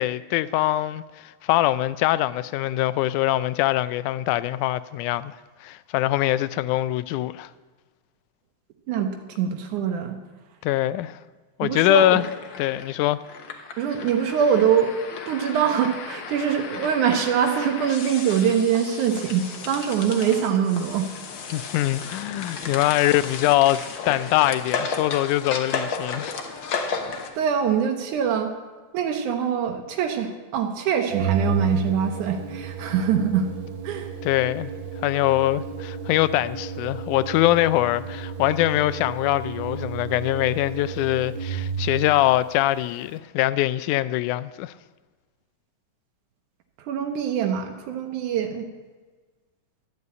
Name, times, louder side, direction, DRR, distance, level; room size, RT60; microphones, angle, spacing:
voice 1, 0.0-7.5 10.6-11.2 11.6-12.2 12.6-13.2 21.5-26.4 34.2-34.7 35.0-44.7, left 15 dB, 85° left, 2.0 m, -23 dB
voice 2, 8.9-10.2 11.6-12.2 13.8-14.9 15.3-21.1 27.4-28.5 28.9-33.5 33.8-34.1 46.9-48.7, right 8 dB, 80° right, 2.4 m, -23 dB
sound 1, 12.0-27.3, left 5 dB, 55° left, 1.4 m, -34 dB
Organ, 31.1-42.1, right 5 dB, 60° right, 1.4 m, -32 dB
12.5 x 8.3 x 8.7 m
omnidirectional pair, 3.5 m